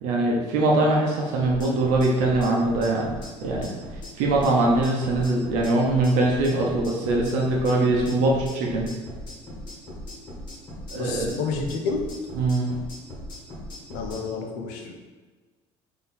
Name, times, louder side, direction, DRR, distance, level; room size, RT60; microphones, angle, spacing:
voice 1, 0.0-3.1 3.4-3.8 4.2-8.9 10.9-11.3 12.3-12.7, right 2 dB, 80° right, -2 dB, 0.7 m, -22 dB
sound 1, 1.4-14.2, left 1 dB, 35° left, 1.2 m, -38 dB
voice 2, 10.9-12.1 13.9-14.9, left 4 dB, 85° left, 3 dB, 0.7 m, -30 dB
4.1 x 2.8 x 4.0 m, 1.3 s
cardioid pair, 175°, 13 cm